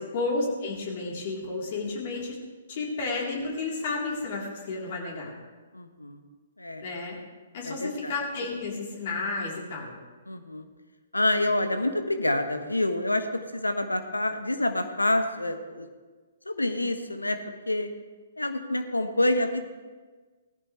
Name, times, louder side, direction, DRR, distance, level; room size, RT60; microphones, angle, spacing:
voice 1, 0.1-2.4 2.7-5.3 6.8-7.2 7.5-10.0, left 3 dB, 45° left, -2 dB, 3.7 m, -31 dB
voice 2, 5.7-6.2 6.6-6.8 7.6-8.1 10.3-10.7 11.1-13.3 13.5-15.9 16.4-17.4 17.7-17.9 18.4-19.6, left 1 dB, 85° left, 7 dB, 1.2 m, -27 dB
18.0 x 14.0 x 3.3 m, 1.4 s
figure-of-eight pair, 125°, 0 cm